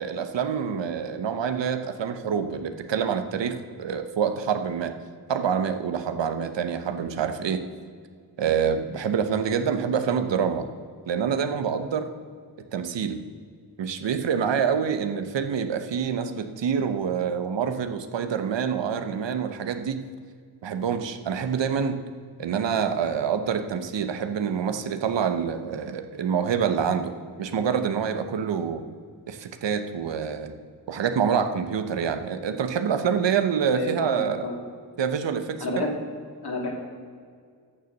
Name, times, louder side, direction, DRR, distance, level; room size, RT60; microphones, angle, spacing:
voice 1, 0.0-4.9 5.3-7.6 8.4-10.7 11.1-12.1 12.7-13.2 13.8-20.0 20.6-22.0 22.4-27.1 27.4-28.8 29.3-30.5 30.9-34.5 35.0-35.9, right 7 dB, 85° right, 9 dB, 1.0 m, -26 dB
voice 2, 33.7-34.6 35.6-36.0 36.4-36.7, left 2 dB, 60° left, 0 dB, 2.7 m, -30 dB
13.0 x 6.9 x 6.5 m, 2.1 s
cardioid pair, 75°, 42 cm